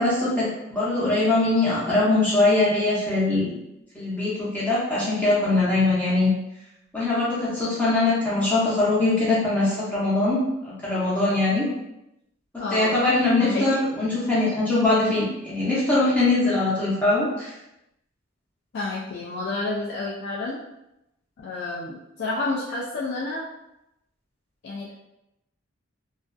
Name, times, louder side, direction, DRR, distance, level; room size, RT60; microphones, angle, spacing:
voice 1, 0.0-3.5 3.9-6.3 6.9-11.6 12.7-17.5, left 2 dB, 10° left, -9 dB, 0.6 m, -22 dB
voice 2, 12.6-12.9 13.4-13.6 18.7-20.6 21.4-23.5 24.6-24.9, left 3 dB, 55° left, -4 dB, 0.3 m, -29 dB
2.4 x 2.4 x 2.2 m, 0.89 s
head